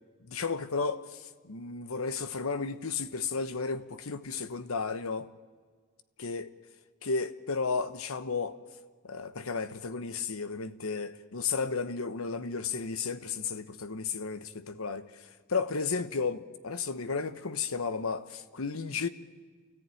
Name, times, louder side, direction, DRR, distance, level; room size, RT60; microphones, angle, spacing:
voice 1, 0.2-5.3 6.2-6.5 7.0-8.6 9.0-19.1, left 4 dB, 70° left, 1.0 m, -33 dB
30.0 x 14.5 x 9.1 m
head